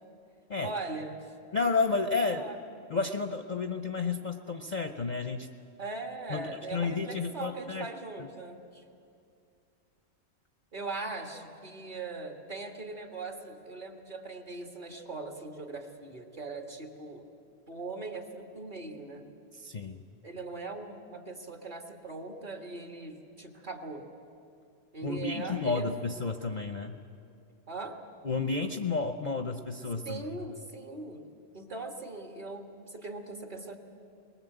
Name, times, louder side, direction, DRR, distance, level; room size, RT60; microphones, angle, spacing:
voice 1, 0.6-1.3 2.3-2.6 5.8-8.8 10.7-17.3 17.7-19.2 20.2-24.1 24.9-25.9 27.7-28.0 30.1-31.3 31.5-33.8, right 3 dB, 35° right, 2 dB, 1.9 m, -40 dB
voice 2, 1.5-2.4 2.9-5.5 6.3-6.4 6.7-7.9 8.2-8.3 19.6-20.0 25.0-27.0 28.2-30.2, left 4 dB, 40° left, 5 dB, 0.8 m, -31 dB
22.5 x 20.5 x 8.0 m, 2.5 s
omnidirectional pair, 1.3 m